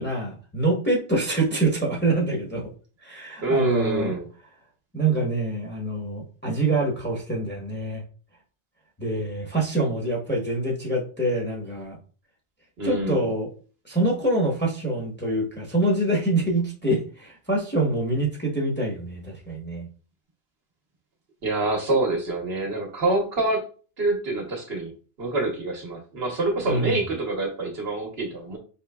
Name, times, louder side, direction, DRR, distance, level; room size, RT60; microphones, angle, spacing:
voice 1, 0.0-2.7 3.0-4.1 4.9-8.0 9.0-12.0 12.8-13.5 13.8-19.9 26.6-27.0, right 2 dB, 10° left, -2 dB, 0.8 m, -25 dB
voice 2, 3.4-4.3 12.8-13.3 21.4-23.6 24.0-24.9 25.2-28.6, right 2 dB, 60° right, 1 dB, 1.1 m, -26 dB
4.5 x 3.1 x 2.2 m, 0.38 s
omnidirectional pair, 1.2 m